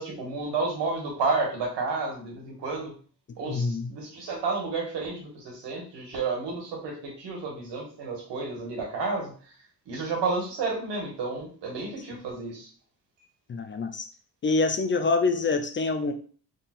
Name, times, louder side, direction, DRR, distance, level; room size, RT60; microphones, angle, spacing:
voice 1, 0.0-2.9 3.4-9.3 9.9-12.7, right 3 dB, 85° right, -1 dB, 1.6 m, -31 dB
voice 2, 3.4-3.9 13.5-14.1 14.4-16.1, left 3 dB, 30° left, 7 dB, 0.4 m, -26 dB
3.7 x 2.5 x 4.2 m, 0.43 s
cardioid pair, 115°, 40 cm